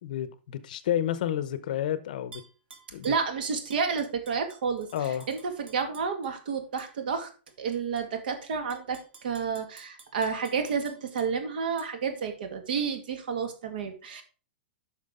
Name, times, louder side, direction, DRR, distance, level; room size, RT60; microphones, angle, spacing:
voice 1, 0.0-2.4 2.9-3.1 4.9-5.3, left 10 dB, 50° left, 0.8 m, -30 dB
Tap / Glass, 2.3-3.2 3.7-6.3 6.8-6.9 7.5-8.0 8.5-11.3 11.8-11.9, right 4 dB, 80° right, 3.1 m, -52 dB
voice 2, 3.0-7.3 7.6-14.2, right 6 dB, 55° right, 2.0 m, -30 dB
9.5 x 6.2 x 3.7 m
supercardioid pair, 180°, 6 cm